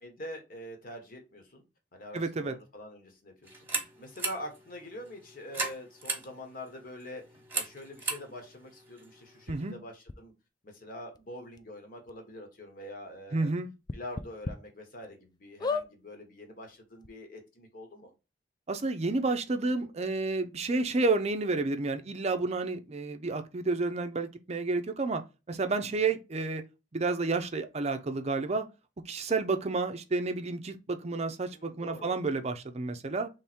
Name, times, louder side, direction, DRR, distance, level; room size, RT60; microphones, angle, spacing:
voice 1, 0.0-1.6 1.9-3.5 3.8-7.2 7.5-10.3 10.6-13.5 13.9-18.1 26.0-26.1 31.5-32.2, left 1 dB, 55° left, 1.3 m, -45 dB
voice 2, 2.1-2.6 9.5-9.8 13.3-13.7 18.7-25.2 25.5-26.6 26.9-28.7 29.1-33.3, right 3 dB, 35° right, 0.5 m, -30 dB
sound 1, 3.4-9.7, right 3 dB, 15° right, 1.1 m, -38 dB
sound 2, 9.5-9.6 10.1-10.2 11.1-11.2 11.6-11.7 12.1-12.2 13.8-14.5 15.0-15.1 15.6-15.9 16.7-16.8 17.0-17.1, left 4 dB, 25° left, 0.3 m, -33 dB
3.5 x 3.2 x 4.2 m
head